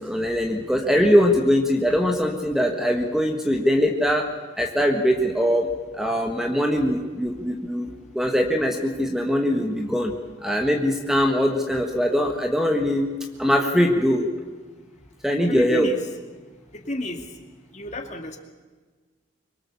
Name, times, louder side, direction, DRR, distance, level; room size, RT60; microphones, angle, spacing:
voice 1, 0.0-4.3 4.6-5.7 6.0-7.9 8.1-10.1 10.4-13.1 13.4-14.3 15.2-15.9, equal, ahead, 3 dB, 1.6 m, -21 dB
voice 2, 15.5-16.0 16.7-17.2 17.7-18.4, left 1 dB, 35° left, 4 dB, 2.2 m, -31 dB
25.0 x 23.0 x 7.1 m, 1.4 s
head